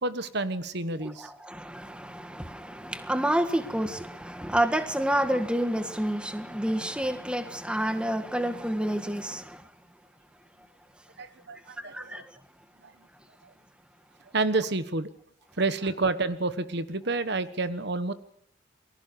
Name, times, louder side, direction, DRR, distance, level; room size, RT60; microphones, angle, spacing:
voice 1, 0.0-1.3 11.2-12.2 14.3-15.1 15.6-18.1, right 3 dB, 55° right, 1.2 m, -29 dB
voice 2, 1.0-9.7 11.8-12.2, right 1 dB, 5° right, 1.6 m, -29 dB
28.5 x 20.5 x 6.9 m
head